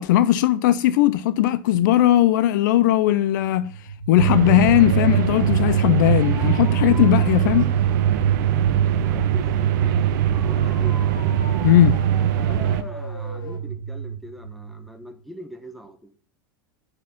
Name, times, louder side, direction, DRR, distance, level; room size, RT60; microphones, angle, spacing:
voice 1, 0.0-3.7 4.1-7.7 11.6-12.0, left 13 dB, 55° left, 0.4 m, -18 dB
sound 1, 3.4-15.2, right 5 dB, 75° left, 2.3 m, -33 dB
sound 2, 4.2-12.8, right 10 dB, 55° right, 0.6 m, -21 dB
voice 2, 9.0-10.1 10.3-11.0 12.4-16.1, equal, ahead, 1.0 m, -41 dB
6.0 x 4.8 x 5.6 m
figure-of-eight pair, 85°, 12 cm